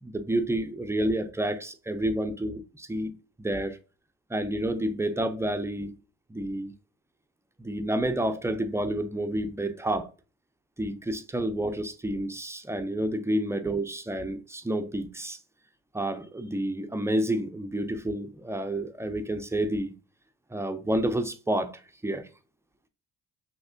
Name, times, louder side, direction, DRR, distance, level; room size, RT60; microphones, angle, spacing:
voice 1, 0.0-3.8 4.3-5.9 6.3-6.7 7.6-10.1 10.8-15.4 15.9-19.9 20.5-22.3, right 1 dB, 10° right, 0.4 m, -29 dB
3.2 x 2.8 x 2.4 m
cardioid pair, 90°, 30 cm